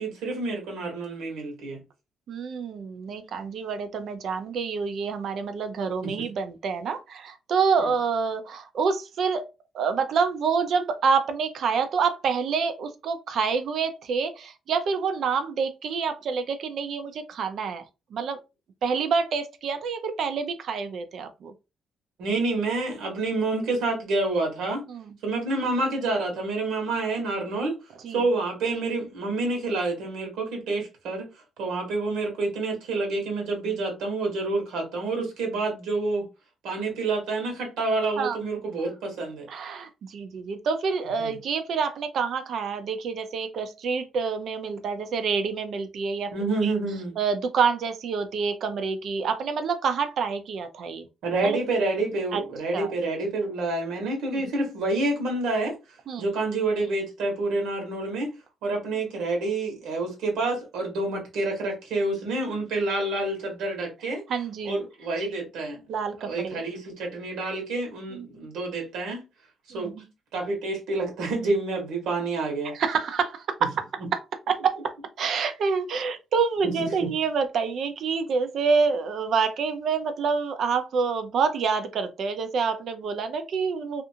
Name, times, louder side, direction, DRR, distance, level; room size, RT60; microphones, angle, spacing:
voice 1, 0.0-1.8 6.0-6.2 7.8-7.9 22.2-24.8 25.2-27.8 28.1-31.3 31.6-36.3 36.6-39.5 41.2-41.3 46.3-47.2 51.2-55.7 56.2-58.3 58.6-64.2 64.6-65.8 66.2-69.2 69.7-69.9 70.3-72.7 76.6-77.1, right 2 dB, 90° right, 1.1 m, -28 dB
voice 2, 2.3-9.4 9.7-17.8 18.1-18.4 18.8-21.5 24.9-25.1 28.0-28.2 30.7-30.8 38.2-38.4 39.5-46.3 46.6-46.7 47.2-51.1 51.4-51.6 52.3-52.4 52.7-52.9 54.3-54.4 56.1-56.3 64.3-64.8 65.9-66.6 68.1-68.3 69.7-70.0 72.7-73.7 74.1-74.2 74.5-84.0, right 5 dB, 65° right, 0.5 m, -27 dB
2.5 x 2.5 x 2.7 m
cardioid pair, 90°, 0 cm